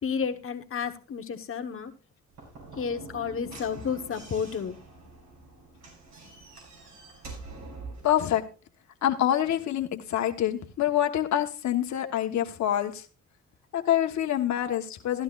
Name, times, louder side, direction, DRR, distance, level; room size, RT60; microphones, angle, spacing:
voice 1, 0.0-1.9 2.8-4.8, left 6 dB, 45° left, 7 dB, 1.3 m, -31 dB
Slam / Knock, 2.3-8.1, right 3 dB, 70° right, 5.7 m, -45 dB
voice 2, 8.0-8.4 9.0-13.0 13.7-15.2, left 11 dB, 65° left, 4 dB, 1.3 m, -26 dB
14.5 x 11.5 x 2.5 m, 0.34 s
cardioid pair, 90°, 30 cm